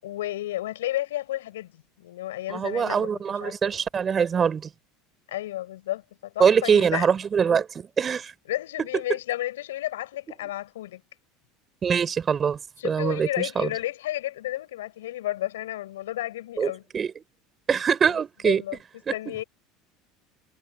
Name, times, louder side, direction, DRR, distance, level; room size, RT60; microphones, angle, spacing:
voice 1, 0.0-3.1 3.4-3.5 5.3-7.1 8.5-11.0 12.8-16.8 18.4-18.8 19.1-19.4, left 14 dB, 85° left, 5.7 m, -32 dB
voice 2, 2.5-4.7 6.4-8.3 11.8-12.6 12.8-13.7 16.6-17.1 17.7-18.6 19.1-19.4, right 7 dB, 30° right, 5.3 m, -23 dB
hypercardioid pair, 85°, 0 cm